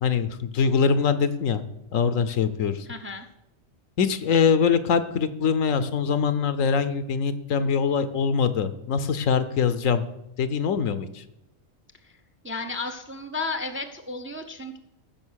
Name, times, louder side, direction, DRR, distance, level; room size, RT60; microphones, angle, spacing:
voice 1, 0.0-1.6 1.9-2.9 4.0-10.0 10.4-11.2, left 6 dB, 70° left, 12 dB, 1.1 m, -23 dB
voice 2, 2.8-3.3 12.0-14.8, left 3 dB, 10° right, 8 dB, 0.6 m, -33 dB
14.5 x 6.5 x 6.4 m, 0.85 s
omnidirectional pair, 1.4 m